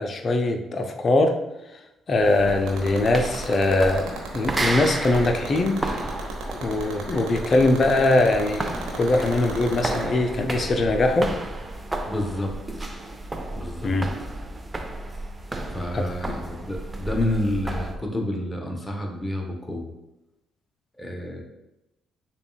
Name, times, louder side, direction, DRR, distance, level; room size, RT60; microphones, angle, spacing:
voice 1, 0.0-1.4 2.1-5.8 6.6-11.3 13.8-14.1 15.9-16.4, left 2 dB, 40° left, 5 dB, 0.5 m, -22 dB
sound 1, 2.2-18.0, right 1 dB, 20° right, 0.5 m, -32 dB
sound 2, 2.6-10.0, right 7 dB, 65° right, 0.8 m, -33 dB
voice 2, 12.1-12.5 12.8-12.9 13.6-13.9 15.7-19.9 21.0-21.4, left 1 dB, 15° left, 2 dB, 0.8 m, -29 dB
6.6 x 2.3 x 2.3 m, 0.94 s
hypercardioid pair, 45°, 0 cm